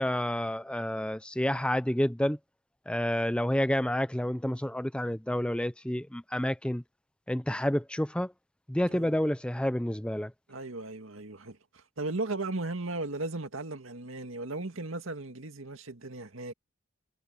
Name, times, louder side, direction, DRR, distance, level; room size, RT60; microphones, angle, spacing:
voice 1, 0.0-2.4 2.9-6.8 7.3-8.3 8.7-10.3, left 1 dB, 5° left, 0.6 m, -29 dB
voice 2, 10.5-16.5, right 2 dB, 75° right, 2.1 m, -36 dB
head